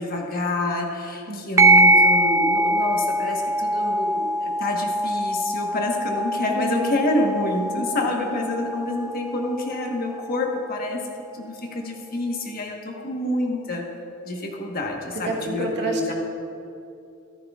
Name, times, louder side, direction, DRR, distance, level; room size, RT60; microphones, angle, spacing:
voice 1, 0.0-11.0 11.3-13.8 14.2-16.1, left 2 dB, 45° left, 1 dB, 1.3 m, -27 dB
sound 1, 1.6-10.6, right 1 dB, 15° right, 0.4 m, -22 dB
voice 2, 6.5-7.0 7.7-8.1 15.1-16.1, right 2 dB, 55° right, -1 dB, 1.4 m, -30 dB
14.0 x 13.5 x 2.4 m, 2.7 s
head